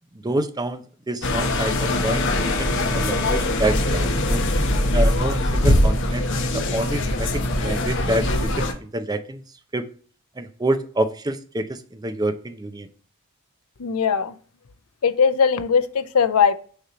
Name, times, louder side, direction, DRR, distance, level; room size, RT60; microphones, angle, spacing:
voice 1, 0.2-4.4 4.9-6.2 6.5-8.3 8.6-9.4 9.7-9.9 10.4-12.9, right 1 dB, 20° right, 9 dB, 0.5 m, -27 dB
sound 1, 1.2-8.7, left 1 dB, 55° left, 1.0 m, -22 dB
voice 2, 13.8-14.3 15.0-16.5, left 6 dB, 75° left, 11 dB, 0.6 m, -19 dB
6.7 x 3.0 x 5.0 m, 0.43 s
head